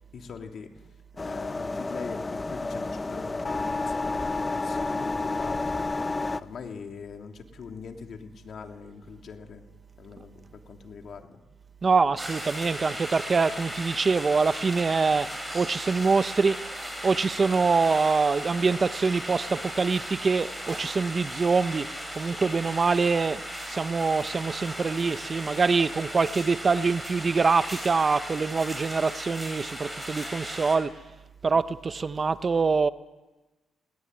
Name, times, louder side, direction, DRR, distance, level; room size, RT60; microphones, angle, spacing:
voice 1, 0.1-0.7 1.1-5.9 6.4-9.6 10.0-11.4, left 6 dB, 55° left, 4 dB, 3.0 m, -42 dB
sound 1, 1.2-6.4, left 3 dB, 25° left, 0.9 m, -30 dB
voice 2, 11.8-15.3 15.5-16.6 17.0-21.9 22.2-23.4 23.7-30.9 31.4-32.9, right 4 dB, 35° right, 13 dB, 0.8 m, -24 dB
sound 2, 12.2-30.8, equal, 5° right, 7.5 m, -37 dB
22.0 x 19.5 x 9.6 m, 1.1 s
cardioid pair, 90°, 0 cm